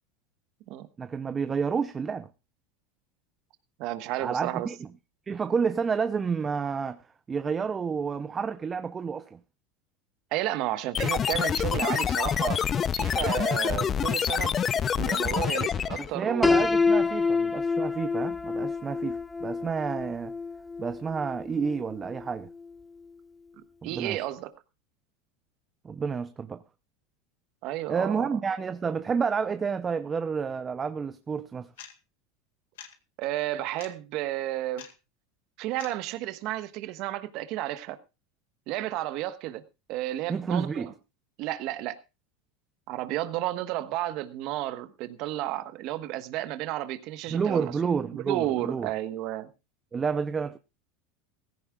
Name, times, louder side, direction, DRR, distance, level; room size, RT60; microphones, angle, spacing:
voice 1, 1.0-2.3 4.2-4.7 5.3-7.0 7.3-9.4 16.0-20.3 20.8-22.5 23.8-24.2 25.8-26.6 27.9-31.7 40.3-40.9 47.3-48.9 49.9-50.6, right 6 dB, 25° right, 0.6 m, -30 dB
voice 2, 3.8-4.7 10.3-12.6 13.0-14.6 15.0-16.5 23.8-24.5 27.6-28.3 33.2-34.9 35.6-38.0 38.7-39.6 39.9-40.9 41.4-42.0 42.9-47.7 48.1-49.5, right 14 dB, 60° right, 1.2 m, -32 dB
sound 1, 10.9-16.1, left 8 dB, 30° left, 0.6 m, -27 dB
Piano, 16.4-22.3, left 4 dB, 10° left, 1.2 m, -27 dB
sound 2, 31.8-31.9 32.8-32.9 33.8-33.9 34.8-34.9 35.8-35.9, left 10 dB, 85° left, 1.9 m, -44 dB
17.0 x 15.5 x 2.4 m
supercardioid pair, 110°, 0 cm